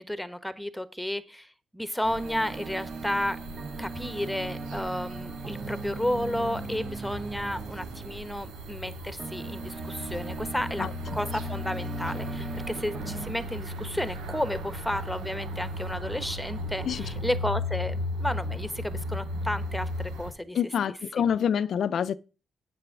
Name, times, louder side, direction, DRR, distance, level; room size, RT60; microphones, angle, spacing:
voice 1, 0.0-3.4 3.8-20.6, left 1 dB, 5° left, 1.2 m, -32 dB
sound 1, 2.0-20.3, left 1 dB, 85° right, 1.7 m, -36 dB
sound 2, 2.1-13.3, right 4 dB, 45° right, 0.4 m, -39 dB
voice 2, 20.5-22.2, left 8 dB, 65° left, 0.4 m, -26 dB
7.6 x 6.1 x 5.9 m
supercardioid pair, 55°, 0 cm